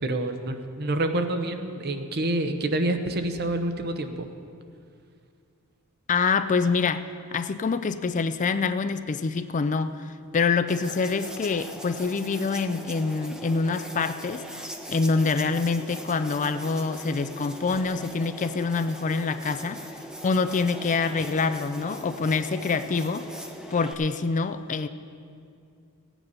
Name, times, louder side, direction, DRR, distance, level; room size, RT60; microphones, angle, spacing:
voice 1, 0.0-4.3, right 1 dB, 50° right, 7 dB, 0.8 m, -27 dB
voice 2, 6.1-7.1 7.3-14.4 14.9-19.8 20.2-23.3 23.7-24.9, left 4 dB, 35° left, 11 dB, 0.4 m, -26 dB
sound 1, 10.7-23.9, equal, 5° right, 0.8 m, -40 dB
16.0 x 9.1 x 5.4 m, 2.3 s
head